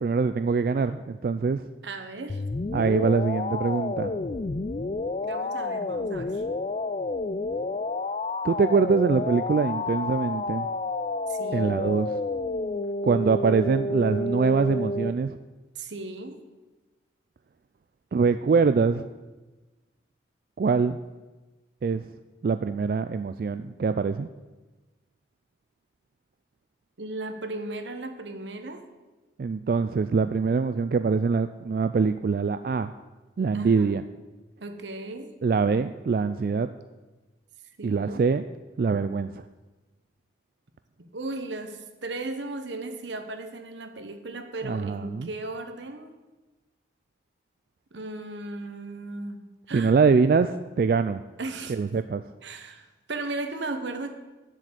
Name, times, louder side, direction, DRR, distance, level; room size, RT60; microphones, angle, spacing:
voice 1, 0.0-1.6 2.7-4.2 8.4-10.7 11.5-12.2 13.0-15.4 18.1-19.1 20.6-21.0 21.8-22.0 22.4-24.3 29.4-32.9 33.4-34.0 35.4-36.7 37.8-38.4 38.8-39.4 44.6-45.3 49.7-51.2 51.7-52.2, right 5 dB, 50° right, 11 dB, 0.3 m, -24 dB
voice 2, 1.8-2.4 5.2-6.4 11.3-11.8 15.7-16.4 27.0-28.9 33.5-34.0 34.6-35.3 37.8-38.3 41.0-46.1 47.9-49.9 51.4-52.0 52.4-54.1, right 2 dB, 85° right, 7 dB, 1.1 m, -36 dB
sound 1, 2.3-15.1, left 2 dB, 35° left, 0.4 m, -30 dB
7.6 x 7.5 x 7.9 m, 1.2 s
head